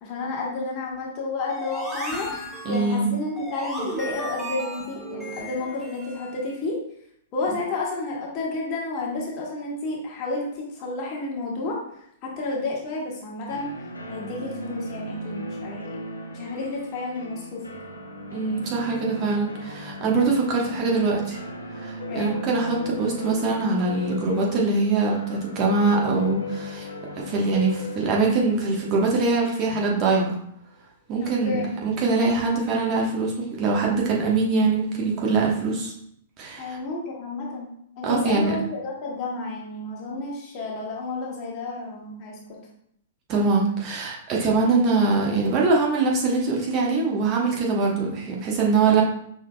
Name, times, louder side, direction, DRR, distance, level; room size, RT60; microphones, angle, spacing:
voice 1, 0.0-2.3 2.6-6.8 7.3-13.7 14.1-16.0 16.3-17.6 22.1-22.3 31.2-31.8 36.6-42.6, left 3 dB, 40° left, -3 dB, 1.6 m, -31 dB
sound 1, 1.5-6.4, equal, 5° right, 1.0 m, -35 dB
voice 2, 2.6-3.1 18.3-21.4 21.8-26.9 27.2-30.3 31.1-35.9 36.4-36.8 38.0-38.5 43.3-49.0, right 3 dB, 35° right, -2 dB, 1.1 m, -23 dB
sound 2, 13.5-30.2, left 1 dB, 85° left, 0.7 m, -37 dB
6.0 x 3.7 x 2.3 m, 0.71 s
figure-of-eight pair, 105°, 0 cm